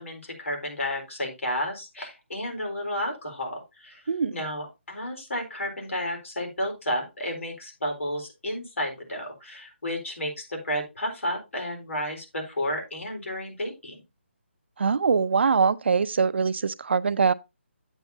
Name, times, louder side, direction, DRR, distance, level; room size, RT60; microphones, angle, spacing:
voice 1, 0.0-4.0 4.3-14.0, equal, 90° left, 4.0 m, -32 dB
voice 2, 14.8-17.3, right 5 dB, 60° right, 0.5 m, -23 dB
8.9 x 8.1 x 2.7 m
hypercardioid pair, 170°, 7 cm